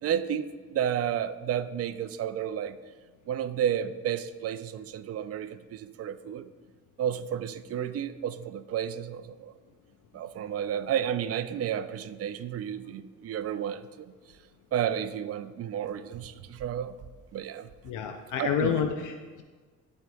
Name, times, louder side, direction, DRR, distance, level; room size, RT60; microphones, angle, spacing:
voice 1, 0.0-2.8 3.3-6.5 7.0-9.5 10.1-14.1 14.7-16.9 17.3-17.7 18.4-18.7, right 9 dB, 50° right, 11 dB, 0.5 m, -31 dB
voice 2, 17.8-19.4, left 7 dB, 80° left, 6 dB, 0.6 m, -29 dB
13.0 x 4.7 x 2.3 m, 1.4 s
cardioid pair, 90°, 30 cm